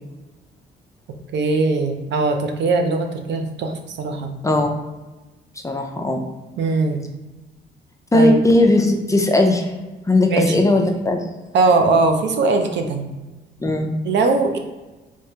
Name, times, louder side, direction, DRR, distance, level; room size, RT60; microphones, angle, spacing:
voice 1, 1.3-4.3 6.6-7.0 8.1-8.4 10.3-10.6 11.5-13.1 14.0-14.6, right 3 dB, 65° right, 5 dB, 0.5 m, -20 dB
voice 2, 5.6-6.2 8.1-9.8 10.1-11.2 13.6-13.9, left 2 dB, 15° left, 3 dB, 0.5 m, -17 dB
3.4 x 3.1 x 2.8 m, 1.2 s
cardioid pair, 90°, 20 cm